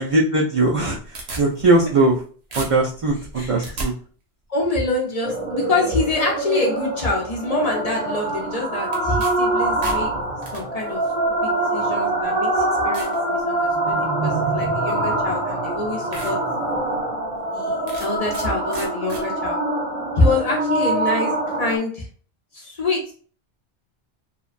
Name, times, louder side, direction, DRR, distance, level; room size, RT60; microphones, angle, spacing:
voice 1, 0.0-2.2 2.5-3.9, right 2 dB, 60° right, -3 dB, 0.3 m, -20 dB
sound 1, 0.7-2.2 2.5-3.9 8.9-9.3 9.6-10.6 11.5-11.6 12.2-12.3 12.9-13.2 13.7-14.0 15.2-15.3 15.7-15.8 16.1-16.3 16.8-16.9 17.9-18.5 18.7-19.2, right 2 dB, 80° right, 1.1 m, -34 dB
voice 2, 3.4-3.7 4.5-10.1 10.5-11.0 11.4-16.4 17.5-19.6 20.2-21.3 21.6-22.1 22.5-23.1, left 2 dB, 45° left, -1 dB, 0.5 m, -25 dB
sound 2, 5.2-21.8, right 2 dB, 35° right, 0.7 m, -24 dB
2.9 x 2.1 x 2.4 m, 0.43 s
omnidirectional pair, 1.1 m